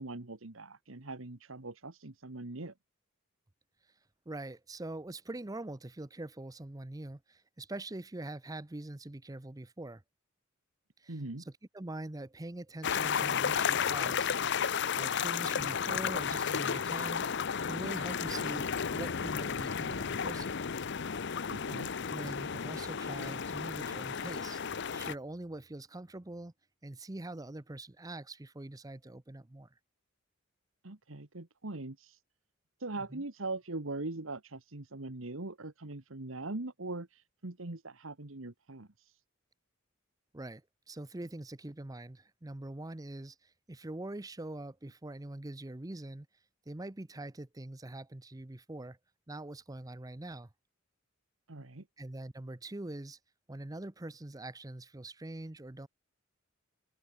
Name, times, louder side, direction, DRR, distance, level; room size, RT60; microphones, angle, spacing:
voice 1, 0.0-2.7 11.1-11.5 21.5-21.9 30.8-32.2 32.8-39.2 51.5-51.8, right 2 dB, 75° right, 1.7 m, -41 dB
voice 2, 4.3-10.0 11.0-11.1 11.5-14.3 15.0-17.3 17.6-20.6 22.1-24.6 24.9-26.5 26.8-29.7 33.1-33.2 40.3-40.6 40.9-46.3 46.7-49.0 49.3-50.5 52.0-53.2 53.5-55.9, right 2 dB, 15° right, 0.7 m, -43 dB
sound 1, 12.8-25.1, left 7 dB, 55° left, 0.7 m, -33 dB
open air
head